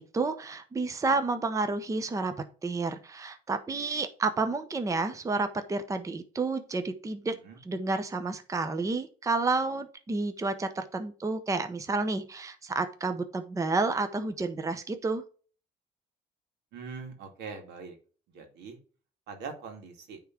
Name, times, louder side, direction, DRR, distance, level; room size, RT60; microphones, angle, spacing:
voice 1, 0.0-2.3 2.6-7.3 7.7-15.2, right 3 dB, 20° right, 9 dB, 0.8 m, -30 dB
voice 2, 16.7-18.0 18.3-18.8 19.3-20.2, right 5 dB, 80° right, 4 dB, 2.1 m, -42 dB
9.1 x 3.7 x 4.4 m, 0.39 s
cardioid pair, 110°, 17 cm